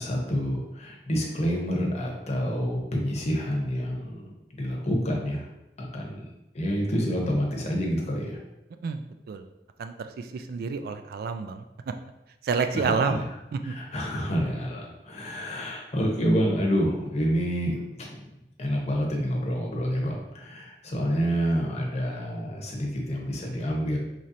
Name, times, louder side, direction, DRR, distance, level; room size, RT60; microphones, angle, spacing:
voice 1, 0.0-5.5 5.8-6.3 6.5-8.4 12.7-13.2 13.6-18.3 18.6-24.0, equal, 40° left, -1 dB, 0.8 m, -28 dB
voice 2, 8.8-9.5 9.8-11.9 12.4-13.2 13.5-13.7, right 5 dB, 60° right, 8 dB, 0.3 m, -29 dB
4.1 x 3.1 x 2.6 m, 0.93 s
head